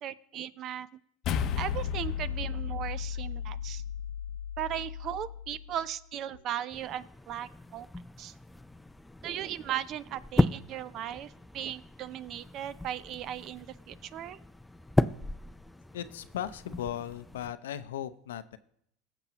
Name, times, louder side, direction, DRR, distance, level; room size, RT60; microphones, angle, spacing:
voice 1, 0.0-0.9 1.6-3.8 4.6-7.9 8.2-8.3 9.2-14.4, right 11 dB, 50° right, 18 dB, 0.5 m, -37 dB
sound 1, 1.2-5.8, left 8 dB, 50° left, 0.7 m, -34 dB
sound 2, 6.7-17.5, left 1 dB, 5° left, 0.4 m, -35 dB
voice 2, 15.9-18.6, left 10 dB, 90° left, 13 dB, 0.6 m, -37 dB
17.5 x 7.0 x 3.0 m, 0.70 s
supercardioid pair, 100°, 0 cm